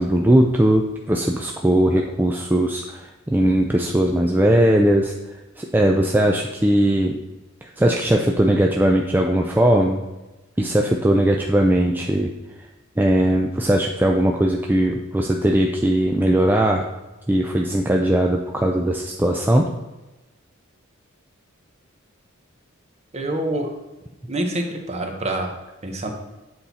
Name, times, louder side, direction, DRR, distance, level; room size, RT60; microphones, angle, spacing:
voice 1, 0.0-5.1 5.6-7.2 7.8-10.0 10.6-12.3 13.0-16.9 17.3-19.7, right 1 dB, 10° right, 1 dB, 0.4 m, -19 dB
voice 2, 23.1-23.7 24.3-26.1, right 1 dB, 35° right, 4 dB, 0.9 m, -26 dB
7.7 x 4.3 x 4.1 m, 1.1 s
head